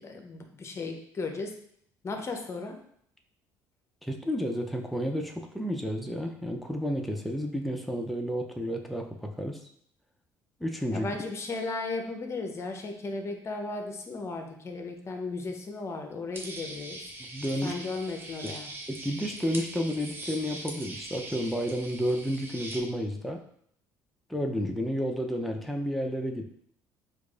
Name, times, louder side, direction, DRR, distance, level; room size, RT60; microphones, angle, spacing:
voice 1, 0.0-1.5 2.0-2.8 10.9-17.1 17.6-18.7, left 3 dB, 35° left, 4 dB, 0.7 m, -35 dB
voice 2, 4.0-9.6 10.6-11.1 17.3-17.8 18.9-23.4 24.3-26.4, equal, ahead, 2 dB, 0.5 m, -31 dB
sound 1, 16.3-22.8, right 2 dB, 25° right, 0.7 m, -41 dB
4.5 x 2.4 x 2.4 m, 0.67 s
supercardioid pair, 75°, 8 cm